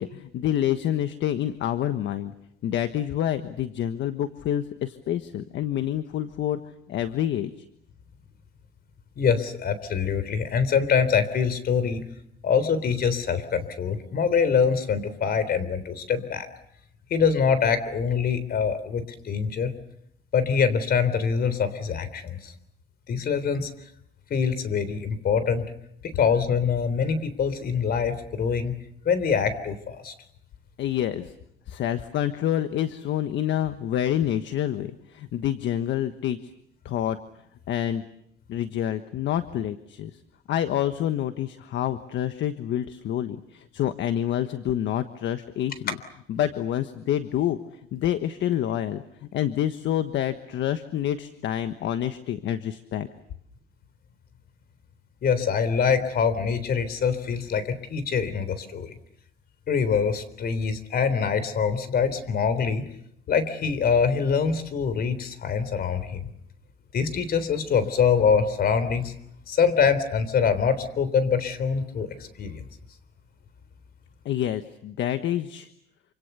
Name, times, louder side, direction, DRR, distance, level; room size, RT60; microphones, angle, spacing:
voice 1, 0.0-2.3 2.6-6.6 6.9-7.5 30.8-31.3 31.7-36.4 36.8-37.2 37.7-38.0 38.5-40.1 40.5-46.0 46.3-47.6 47.9-53.1 74.2-75.7, left 11 dB, 65° left, 10 dB, 1.4 m, -27 dB
voice 2, 9.2-12.0 12.4-16.5 17.1-19.7 20.3-22.5 23.1-23.7 24.3-25.7 26.0-28.8 29.1-30.1 55.2-58.9 59.7-62.9 63.3-66.3 66.9-69.1 69.5-72.7, left 6 dB, 50° left, 14 dB, 3.6 m, -24 dB
28.0 x 26.5 x 6.9 m, 0.73 s
cardioid pair, 115°, 20 cm